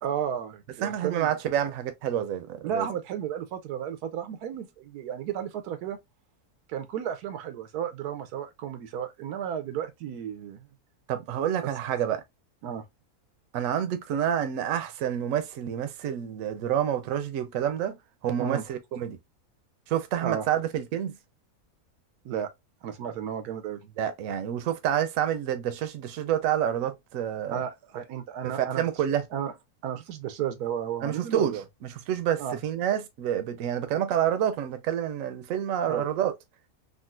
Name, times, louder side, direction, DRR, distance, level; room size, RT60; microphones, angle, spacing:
voice 1, 0.0-1.4 2.6-6.0 6.7-10.7 11.6-11.7 12.6-12.8 18.4-18.6 20.2-20.5 22.2-22.5 22.8-23.8 27.5-28.9 29.3-29.5 29.8-31.6 32.4-32.6 35.9-36.1, right 9 dB, 90° right, 1.2 m, -33 dB
voice 2, 0.8-2.9 11.1-12.2 13.5-18.0 18.2-19.2 19.9-21.1 24.0-27.6 28.4-29.2 31.0-31.5 31.9-36.3, right 10 dB, 65° right, 0.9 m, -28 dB
3.7 x 2.4 x 2.3 m
omnidirectional pair, 1.6 m